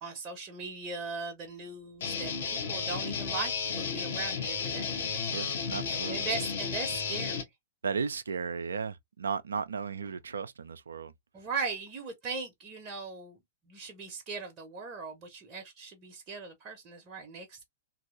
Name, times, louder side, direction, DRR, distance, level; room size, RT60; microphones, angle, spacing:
voice 1, 0.0-5.0 5.9-7.4 11.3-13.4 13.7-17.6, right 4 dB, 25° right, 0.7 m, -39 dB
Guitar, 2.0-7.4, left 5 dB, 55° left, 1.0 m, -33 dB
voice 2, 5.3-6.5 7.8-11.1, right 5 dB, 70° right, 0.3 m, -35 dB
3.0 x 2.6 x 2.5 m
figure-of-eight pair, 105°, 0 cm